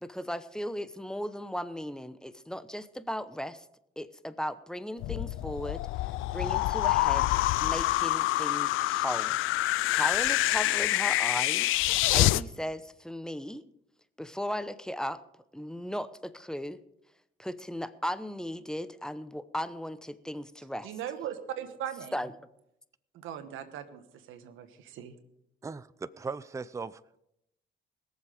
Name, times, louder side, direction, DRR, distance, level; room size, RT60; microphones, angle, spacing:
voice 1, 0.0-3.6 4.0-5.8 6.3-7.3 7.6-9.4 9.9-11.7 12.1-13.6 14.2-15.2 15.5-16.8 17.4-20.9 22.1-22.3, equal, 5° left, 13 dB, 0.8 m, -36 dB
sound 1, 5.0-12.4, left 17 dB, 90° left, 0.4 m, -26 dB
voice 2, 20.8-22.2 23.1-24.0 24.3-25.1, right 10 dB, 90° right, 10 dB, 1.3 m, -39 dB
voice 3, 25.6-27.0, right 4 dB, 15° right, 18 dB, 0.4 m, -38 dB
21.5 x 7.3 x 5.0 m, 0.80 s
cardioid pair, 90°, 20 cm